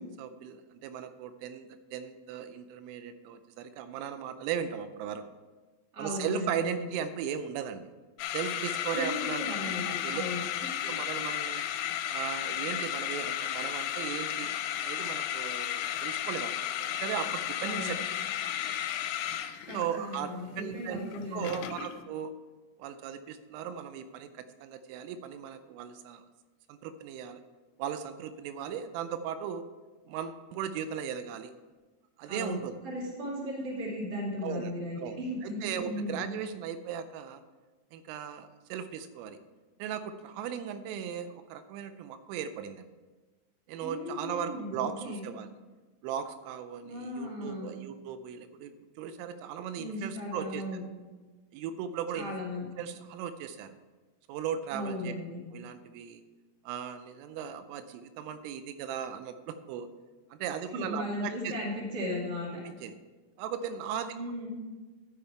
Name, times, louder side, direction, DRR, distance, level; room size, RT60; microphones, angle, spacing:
voice 1, 0.2-5.3 6.0-7.8 8.3-9.4 10.0-10.2 10.9-11.7 12.1-14.5 14.8-16.5 16.8-18.0 19.7-21.0 21.3-22.3 22.8-26.2 26.7-27.4 27.8-29.7 30.1-31.5 32.2-32.8 34.4-37.4 37.9-39.4 39.8-42.9 43.7-45.5 46.0-50.6 51.5-52.3 52.8-53.7 54.3-55.1 55.5-56.2 56.7-59.9 60.3-61.5 62.6-63.0 63.4-64.1, right 8 dB, 85° right, 10 dB, 3.2 m, -37 dB
voice 2, 5.9-6.9 8.9-10.5 17.6-18.0 19.6-21.7 32.2-36.3 43.8-45.2 46.8-47.7 49.8-50.8 52.1-52.7 54.7-55.4 60.7-62.6 64.1-64.5, left 1 dB, 35° right, -4 dB, 2.0 m, -36 dB
sound 1, 8.2-22.0, left 11 dB, 90° left, 3.2 m, -34 dB
12.5 x 6.7 x 4.5 m, 1.3 s
omnidirectional pair, 5.7 m